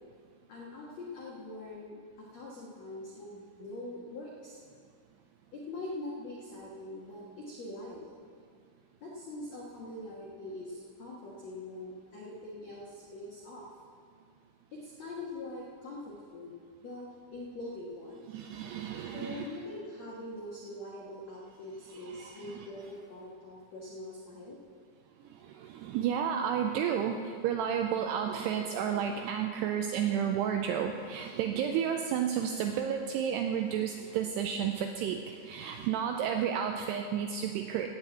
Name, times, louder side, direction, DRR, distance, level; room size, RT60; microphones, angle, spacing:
voice 1, 0.5-4.6 5.5-8.1 9.0-13.7 14.7-16.5 16.8-18.2 19.1-24.6, left 2 dB, 70° left, -4 dB, 1.6 m, -43 dB
voice 2, 18.3-19.5 22.0-22.5 25.3-37.9, right 8 dB, 90° right, 5 dB, 2.4 m, -32 dB
15.5 x 5.9 x 9.1 m, 2.2 s
omnidirectional pair, 5.4 m